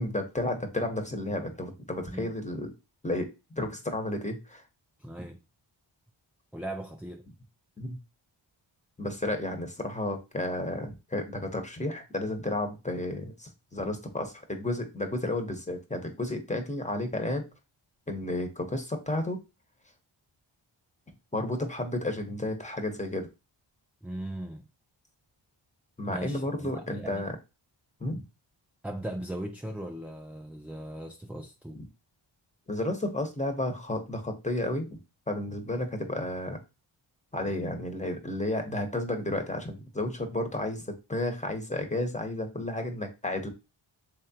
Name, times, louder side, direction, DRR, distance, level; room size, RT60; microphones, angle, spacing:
voice 1, 0.0-2.7 3.0-4.6 7.8-8.0 9.0-17.5 18.1-19.4 21.3-23.3 26.0-27.3 28.0-28.2 32.7-35.0 35.3-36.6 37.3-43.5, left 1 dB, 15° left, 1.0 m, -32 dB
voice 2, 5.0-5.4 6.5-7.2 24.0-24.7 26.0-27.3 28.8-31.8, right 1 dB, 5° right, 0.3 m, -38 dB
3.6 x 3.2 x 2.8 m
cardioid pair, 45°, 49 cm